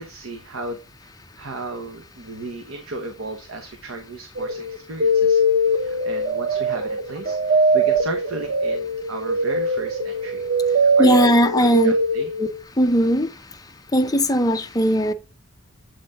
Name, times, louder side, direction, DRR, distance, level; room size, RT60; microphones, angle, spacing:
voice 1, 0.0-5.4 5.7-12.3, right 2 dB, 85° right, 1.0 m, -35 dB
sound 1, 4.4-12.6, right 1 dB, 55° right, 0.7 m, -21 dB
voice 2, 11.0-11.9 12.4-12.5 12.8-13.3 13.9-15.1, equal, 20° left, 0.6 m, -18 dB
8.0 x 4.3 x 3.7 m
head